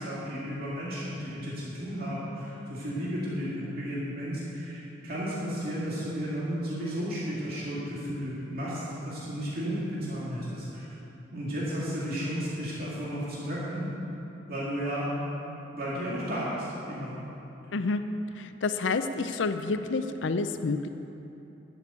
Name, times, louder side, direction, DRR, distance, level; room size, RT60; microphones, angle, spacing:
voice 1, 0.0-10.9 11.3-13.9 14.5-15.2 15.7-17.2, equal, 55° right, -8 dB, 2.3 m, -33 dB
voice 2, 18.4-20.9, left 3 dB, 85° left, 9 dB, 0.6 m, -29 dB
12.0 x 6.9 x 8.3 m, 3.0 s
head